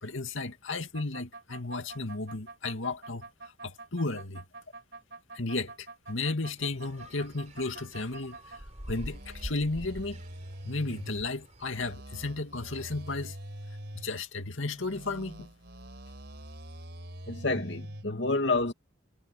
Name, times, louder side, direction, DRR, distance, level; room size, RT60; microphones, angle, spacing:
voice 1, 0.0-3.3 3.6-4.4 5.3-10.2 10.6-13.4 13.9-15.5, left 3 dB, 85° left, 2.3 m, -34 dB
sound 1, 0.9-8.6 8.9-11.1 11.6-14.1 14.7-18.1, right 1 dB, 55° right, 5.5 m, -45 dB
sound 2, 6.6-11.7, equal, 35° right, 3.9 m, -46 dB
voice 2, 17.3-18.7, left 3 dB, 65° left, 2.4 m, -28 dB
head